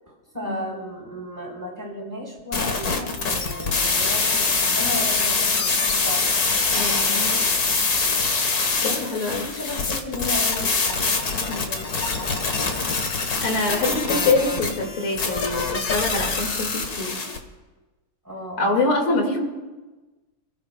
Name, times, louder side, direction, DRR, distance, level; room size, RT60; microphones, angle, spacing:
voice 1, 0.1-6.3 7.1-7.5 8.6-11.9 12.6-12.7 18.2-18.8, left 1 dB, 10° right, -3 dB, 3.8 m, -34 dB
sound 1, 2.5-17.4, left 4 dB, 50° left, 1.8 m, -24 dB
voice 2, 6.7-7.3 8.8-9.4 11.5-11.6 13.4-17.2 18.6-19.4, left 2 dB, 85° left, 1 dB, 3.0 m, -25 dB
29.0 x 14.5 x 2.3 m, 1.2 s
omnidirectional pair, 2.3 m